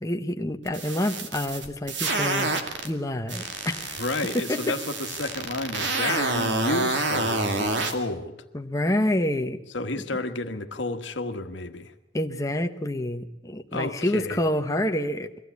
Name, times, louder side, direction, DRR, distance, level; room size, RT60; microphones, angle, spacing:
voice 1, 0.0-2.5 2.8-4.0 4.5-4.8 6.0-6.4 8.5-9.6 12.1-15.3, left 1 dB, 20° left, 5 dB, 1.0 m, -28 dB
sound 1, 0.7-2.9 3.3-7.9, right 2 dB, 75° right, 2.3 m, -28 dB
voice 2, 4.0-8.4 9.7-11.9 13.7-14.4, left 2 dB, 90° left, 7 dB, 1.4 m, -31 dB
22.5 x 15.5 x 8.3 m, 0.96 s
head